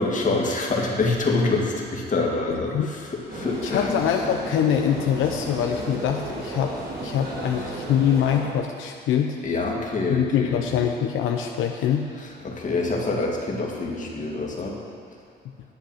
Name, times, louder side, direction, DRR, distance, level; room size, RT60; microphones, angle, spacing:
voice 1, 0.0-4.0 7.5-7.7 9.4-10.6 12.2-14.8, left 3 dB, 40° left, -1 dB, 2.1 m, -26 dB
sound 1, 3.3-8.4, right 2 dB, 50° right, 2.8 m, -34 dB
voice 2, 3.6-9.4 10.1-12.0, left 9 dB, 85° left, 3 dB, 0.7 m, -24 dB
10.5 x 7.9 x 5.8 m, 2.2 s
cardioid pair, 90°, 20 cm